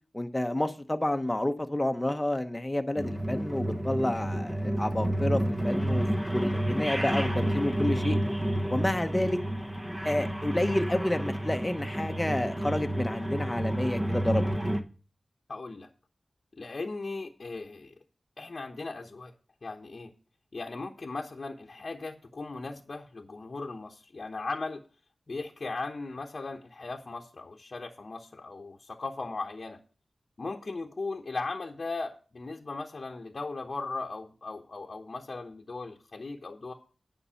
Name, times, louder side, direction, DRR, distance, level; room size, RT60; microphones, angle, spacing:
voice 1, 0.1-6.0 6.3-8.2 8.7-9.4 10.0-14.5, left 1 dB, 15° left, 1.0 m, -29 dB
sound 1, 3.0-14.8, right 1 dB, 15° right, 1.1 m, -30 dB
voice 2, 15.5-15.9 16.6-17.9 18.4-19.3 19.6-20.1 20.5-24.8 25.3-29.8 30.4-36.7, left 3 dB, 55° left, 1.0 m, -38 dB
10.0 x 5.4 x 5.7 m
wide cardioid pair, 60°, 0 cm